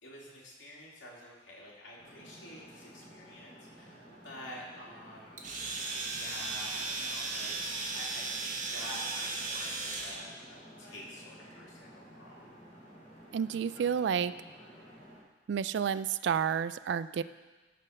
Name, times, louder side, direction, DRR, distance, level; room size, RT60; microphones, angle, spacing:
voice 1, 0.0-5.5 6.0-12.4, left 1 dB, 75° left, -5 dB, 2.7 m, -49 dB
sound 1, 2.0-15.2, equal, 45° left, 2.8 m, -53 dB
Domestic sounds home sounds, 5.4-10.2, right 3 dB, 45° right, 1.4 m, -36 dB
voice 2, 13.3-14.3 15.5-17.2, right 7 dB, 65° right, 15 dB, 0.3 m, -30 dB
13.0 x 4.3 x 6.3 m, 1.3 s
head